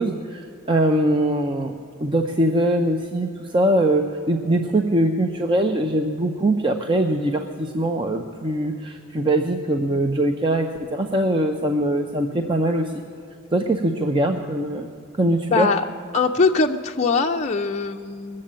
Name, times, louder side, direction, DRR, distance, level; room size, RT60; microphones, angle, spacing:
voice 1, 0.0-1.7 2.0-12.9 13.5-14.9 15.2-15.7, right 1 dB, 20° right, 4 dB, 0.6 m, -22 dB
voice 2, 15.5-15.9 16.1-18.4, left 4 dB, 30° left, 2 dB, 0.5 m, -21 dB
20.5 x 7.5 x 8.8 m, 2.6 s
head